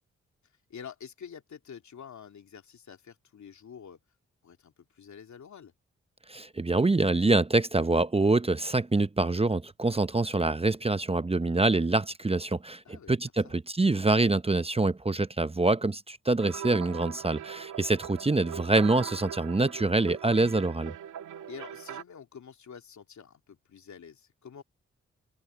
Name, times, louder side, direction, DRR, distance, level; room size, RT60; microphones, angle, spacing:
voice 1, 0.7-4.0 4.4-5.7 12.8-13.2 13.4-13.6 21.5-24.6, left 7 dB, 65° left, 2.9 m, -47 dB
voice 2, 6.3-20.9, right 2 dB, 20° right, 0.9 m, -25 dB
sound 1, 16.4-22.0, right 9 dB, 80° right, 2.2 m, -41 dB
open air
supercardioid pair, 40°, 30 cm